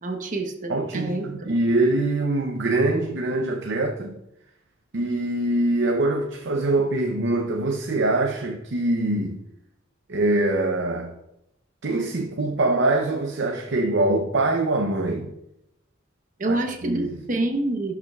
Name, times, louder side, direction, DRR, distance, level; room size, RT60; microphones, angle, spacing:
voice 1, 0.0-1.3 16.4-17.9, right 2 dB, 40° right, 1.0 m, -27 dB
voice 2, 0.7-4.2 4.9-9.4 10.1-11.1 11.8-15.3 16.5-16.6 16.8-17.2, right 2 dB, 60° right, 0.7 m, -23 dB
12.0 x 5.8 x 2.4 m
head